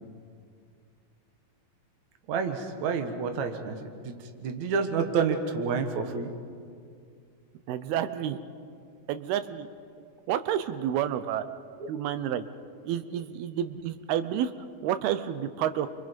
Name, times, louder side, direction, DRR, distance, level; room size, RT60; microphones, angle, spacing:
voice 1, 2.3-3.8 4.0-6.3 11.8-11.9, right 5 dB, 60° right, 6 dB, 2.5 m, -29 dB
voice 2, 7.7-8.4 9.1-9.7 10.3-11.4 11.9-12.4 12.8-14.5 14.8-15.9, right 10 dB, 90° right, 11 dB, 2.7 m, -29 dB
30.0 x 25.0 x 5.3 m, 2.3 s
omnidirectional pair, 4.3 m